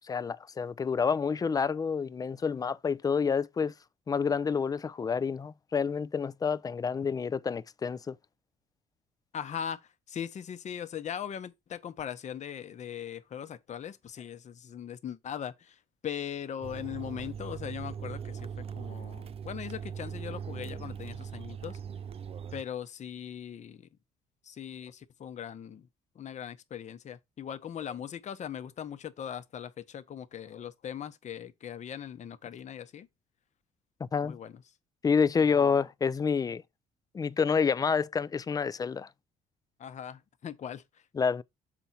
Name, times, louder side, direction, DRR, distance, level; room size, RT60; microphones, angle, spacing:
voice 1, 0.0-3.7 4.1-8.2 34.0-34.4 35.0-36.6 37.1-39.1 41.2-41.4, left 6 dB, 20° left, 0.4 m, -28 dB
voice 2, 9.3-21.8 22.5-23.9 24.4-25.9 26.1-33.1 34.2-34.6 35.4-35.8 39.8-41.1, left 9 dB, 45° left, 0.9 m, -40 dB
sound 1, 16.6-22.6, right 7 dB, 35° right, 0.5 m, -40 dB
6.9 x 4.5 x 4.1 m
cardioid pair, 110°, 17 cm